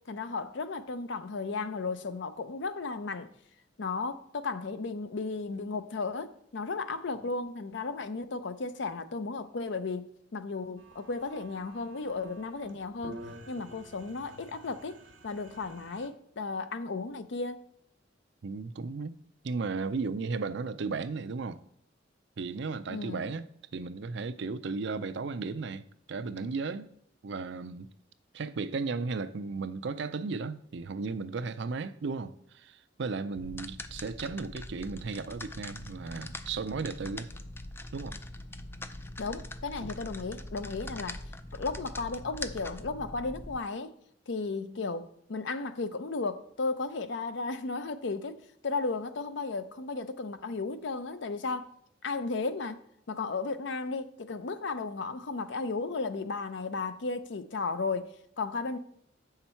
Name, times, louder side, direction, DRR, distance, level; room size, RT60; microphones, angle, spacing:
voice 1, 0.1-3.3 3.8-13.2 13.5-17.6 22.9-23.3 39.2-41.2 41.5-43.9 44.3-51.7 52.0-52.8 53.1-58.8, left 3 dB, 70° left, 0.6 m, -34 dB
sound 1, 10.8-16.1, right 2 dB, 90° right, 1.3 m, -50 dB
voice 2, 18.4-19.2 19.4-21.6 22.4-26.9 27.2-27.9 28.3-37.3 37.9-38.2, right 4 dB, 65° right, 0.5 m, -35 dB
sound 2, 33.4-43.6, left 2 dB, 10° left, 0.3 m, -42 dB
8.0 x 5.8 x 4.4 m
head